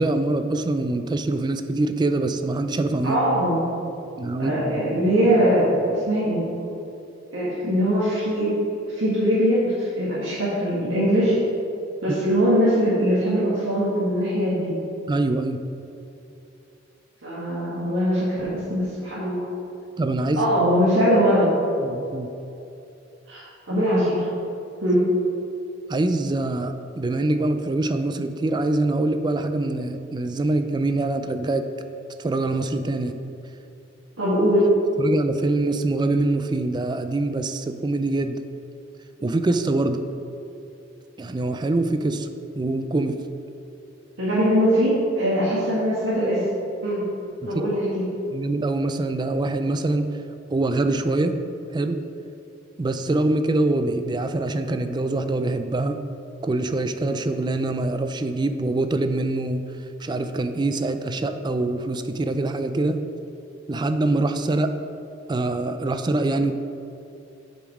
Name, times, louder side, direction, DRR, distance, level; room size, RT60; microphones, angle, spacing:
voice 1, 0.0-3.2 4.2-4.5 15.1-15.6 20.0-20.4 21.8-22.3 25.9-31.7 32.2-33.1 35.0-38.4 39.2-40.0 41.2-42.3 42.5-43.2 47.4-47.6 48.3-50.1 50.5-51.4 51.7-52.0 52.8-56.0 56.4-59.6 60.0-63.0 63.7-64.7 65.3-66.5, right 2 dB, 25° right, 8 dB, 0.3 m, -24 dB
voice 2, 3.0-3.6 4.4-6.5 7.3-8.5 8.9-11.4 12.0-14.7 17.2-19.5 20.4-21.5 23.3-24.3 24.8-25.0 34.2-34.7 44.2-46.4 46.8-47.0 47.4-48.1, equal, 90° right, -10 dB, 1.8 m, -21 dB
7.8 x 5.2 x 4.9 m, 2.7 s
head